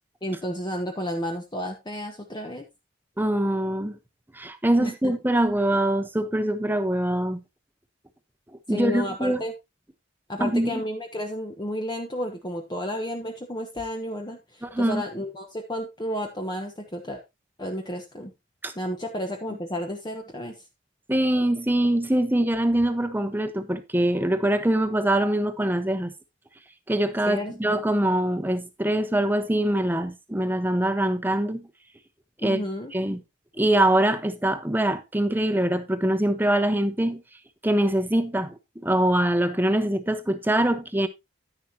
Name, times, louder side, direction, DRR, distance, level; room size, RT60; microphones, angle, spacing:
voice 1, 0.2-2.7 4.8-5.1 8.7-9.5 10.3-17.2 17.6-18.3 18.8-20.6 27.3-27.8 32.4-32.9, left 1 dB, 25° left, 1.1 m, -32 dB
voice 2, 3.2-4.0 4.3-7.4 8.7-9.4 10.4-10.8 14.6-15.0 18.6-18.7 21.1-26.1 26.9-31.7 32.4-32.6 32.9-33.2 33.6-37.2 37.6-41.1, right 1 dB, 10° right, 1.0 m, -23 dB
10.5 x 10.5 x 2.9 m
head